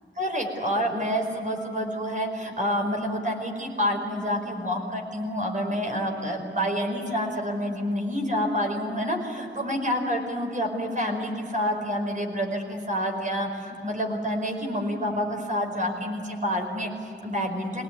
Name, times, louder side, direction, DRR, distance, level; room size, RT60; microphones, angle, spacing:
voice 1, 0.2-17.8, equal, 40° right, 3 dB, 5.1 m, -28 dB
25.5 x 19.0 x 9.5 m, 2.6 s
wide cardioid pair, 95°, 20 cm